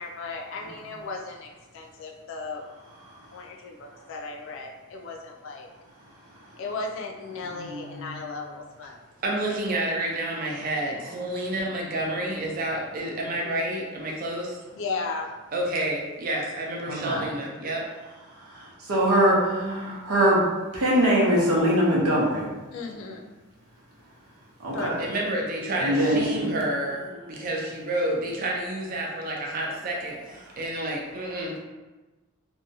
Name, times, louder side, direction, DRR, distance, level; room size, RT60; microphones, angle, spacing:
voice 1, 0.0-1.5 1.7-2.6 3.3-5.7 6.6-9.0 13.4-13.5 14.7-15.3 22.7-23.2 24.7-25.0, left 3 dB, 60° left, 1 dB, 0.4 m, -35 dB
voice 2, 7.5-8.2 16.9-17.2 18.5-20.4 20.7-22.4 24.6-25.0 25.8-26.4, right 1 dB, 90° right, -4 dB, 0.8 m, -23 dB
voice 3, 9.2-14.6 15.5-17.8 25.0-27.0 27.3-31.6, right 1 dB, 40° right, -1 dB, 0.5 m, -29 dB
2.7 x 2.2 x 2.6 m, 1.2 s
head